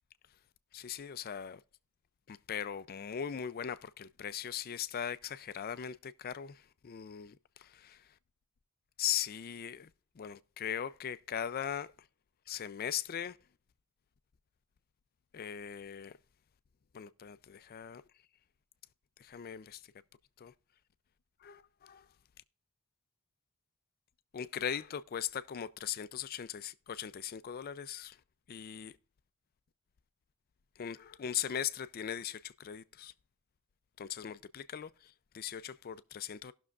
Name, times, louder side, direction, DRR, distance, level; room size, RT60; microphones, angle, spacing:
voice 1, 0.7-1.6 2.3-8.0 9.0-9.9 10.2-11.9 12.5-13.4 15.3-16.2 16.9-18.0 19.2-19.8 20.4-20.5 21.4-22.0 24.3-28.2 28.5-28.9 30.8-33.1 34.0-36.5, left 9 dB, 45° left, 0.4 m, -39 dB
18.5 x 6.2 x 2.4 m
head